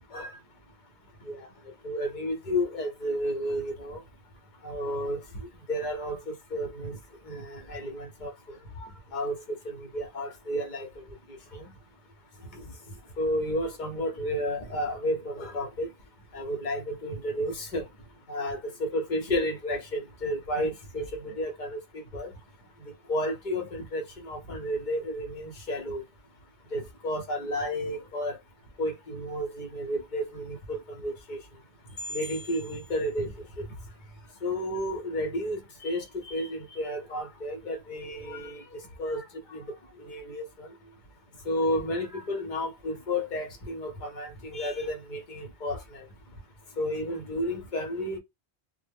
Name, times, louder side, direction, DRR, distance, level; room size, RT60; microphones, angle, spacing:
voice 1, 1.8-4.0 4.6-5.2 5.7-6.2 6.5-7.0 7.3-8.3 9.1-9.4 9.7-10.9 11.5-11.6 13.2-15.9 16.3-17.8 18.3-21.8 22.1-22.3 23.1-26.0 26.7-28.4 28.8-31.4 32.1-33.3 34.4-38.6 39.0-39.2 39.5-39.6 40.0-40.7 41.5-45.8 46.8-48.2, equal, 50° left, 0.8 m, -31 dB
2.1 x 2.0 x 3.4 m
omnidirectional pair, 1.1 m